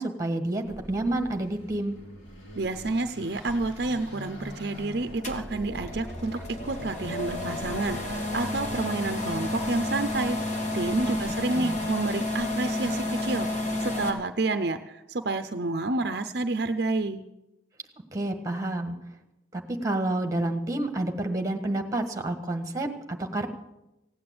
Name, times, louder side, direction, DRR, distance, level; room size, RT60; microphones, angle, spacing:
voice 1, 0.0-2.0 11.1-11.2 11.5-11.8 18.1-18.9 19.5-23.5, right 1 dB, 15° right, 5 dB, 1.4 m, -29 dB
Car passing by / Accelerating revving vroom, 0.6-11.9, equal, 85° left, 3.6 m, -43 dB
voice 2, 2.6-10.4 10.7-17.2, right 2 dB, 55° right, 9 dB, 0.6 m, -29 dB
sound 1, 5.2-14.1, left 1 dB, 40° left, 2.0 m, -31 dB
16.5 x 8.8 x 8.6 m, 0.94 s
head